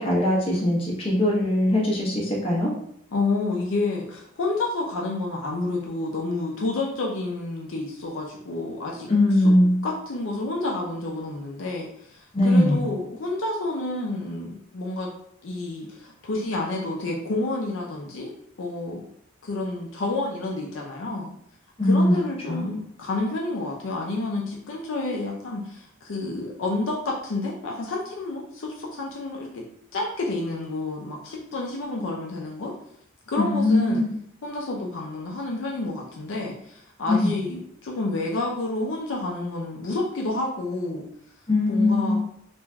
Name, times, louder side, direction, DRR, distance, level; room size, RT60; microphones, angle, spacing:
voice 1, 0.0-2.7 9.1-9.8 12.3-12.8 21.8-22.2 22.5-22.7 33.4-34.1 37.1-37.3 41.5-42.2, left 1 dB, 30° left, -4 dB, 0.8 m, -21 dB
voice 2, 3.1-9.1 9.4-9.5 9.8-15.1 15.4-18.3 18.6-19.0 19.4-21.3 21.8-29.6 29.9-32.7 33.3-34.0 34.4-41.0 41.7-42.2, left 2 dB, 70° left, -1 dB, 0.5 m, -29 dB
3.2 x 2.5 x 2.2 m, 0.69 s
head